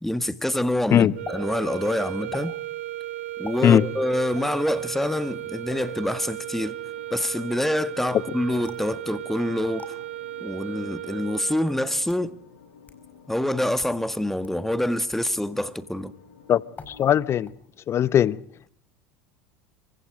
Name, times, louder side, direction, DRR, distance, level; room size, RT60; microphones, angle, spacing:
voice 1, 0.0-2.5 3.4-6.8 7.1-9.8 10.4-12.4 13.3-16.1, left 1 dB, 5° left, 1.8 m, -26 dB
sound 1, 1.1-12.0, right 15 dB, 75° right, 1.8 m, -35 dB
sound 2, 1.2-1.4 2.3-2.5 3.4-3.6 4.6-4.8 5.7-5.9 8.6-8.9 9.8-9.9 10.9-11.0 11.8-12.3 12.9-13.0 13.7-14.0 14.4-14.5 15.1-15.3 16.7-17.2 17.5-17.9, left 4 dB, 20° left, 5.3 m, -42 dB
sound 3, 5.1-17.4, left 6 dB, 75° left, 5.3 m, -51 dB
voice 2, 16.9-17.5 17.9-18.4, left 10 dB, 40° left, 0.9 m, -19 dB
27.5 x 25.0 x 5.1 m
hypercardioid pair, 75°, 7 cm